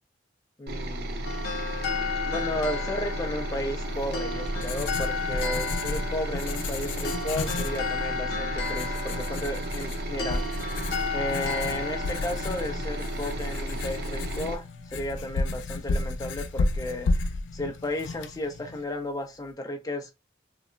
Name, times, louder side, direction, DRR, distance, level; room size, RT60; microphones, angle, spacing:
voice 1, 0.6-1.3 2.3-10.6 11.1-20.1, left 1 dB, 20° left, 0.4 m, -34 dB
sound 1, 0.7-14.6, right 1 dB, 60° right, 0.4 m, -33 dB
sound 2, 1.2-14.5, left 4 dB, 60° left, 0.7 m, -34 dB
Writing, 4.0-18.8, left 3 dB, 85° left, 0.4 m, -33 dB
3.3 x 2.0 x 2.3 m
head